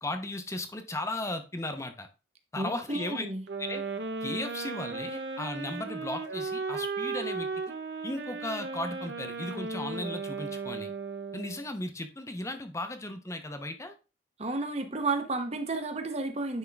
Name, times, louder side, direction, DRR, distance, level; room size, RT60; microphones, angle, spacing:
voice 1, 0.0-2.1 2.5-3.3 3.6-3.8 4.2-7.5 8.0-10.9 11.3-13.9, left 2 dB, 15° left, 7 dB, 0.8 m, -36 dB
voice 2, 2.6-3.4 14.4-16.6, right 3 dB, 35° right, 6 dB, 1.0 m, -32 dB
sound 1, 3.5-11.7, right 4 dB, 60° right, 0.7 m, -36 dB
9.7 x 3.7 x 3.5 m, 0.31 s
head